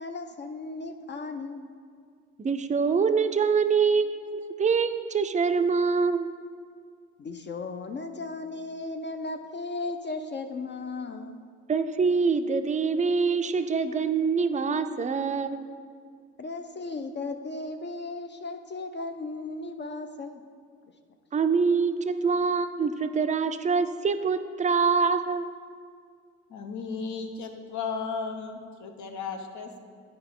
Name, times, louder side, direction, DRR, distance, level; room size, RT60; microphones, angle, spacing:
voice 1, 0.0-1.7 7.2-11.4 16.4-20.4, left 3 dB, 35° left, 6 dB, 0.4 m, -36 dB
voice 2, 2.4-6.3 11.7-15.6 21.3-25.5, right 5 dB, 25° right, 9 dB, 0.4 m, -25 dB
voice 3, 26.5-29.8, left 5 dB, 70° left, 4 dB, 0.9 m, -35 dB
10.0 x 4.9 x 3.7 m, 2.1 s
cardioid pair, 90°, 30 cm